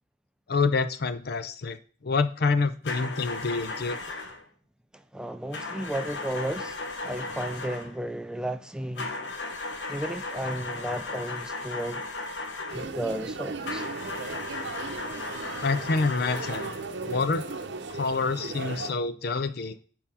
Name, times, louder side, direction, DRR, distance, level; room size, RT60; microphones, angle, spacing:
voice 1, 0.5-1.8 2.0-4.0 15.6-16.7 17.0-17.5 17.9-19.8, left 4 dB, 60° left, 0.6 m, -27 dB
sound 1, 2.8-4.4 5.5-8.0 9.0-12.9 13.6-16.9, left 3 dB, 80° left, 1.1 m, -36 dB
voice 2, 4.9-6.8 7.0-9.2 9.9-12.0 12.7-13.8, right 1 dB, 5° right, 0.4 m, -33 dB
sound 2, 12.7-18.9, right 3 dB, 70° right, 0.8 m, -37 dB
6.7 x 4.3 x 5.5 m
head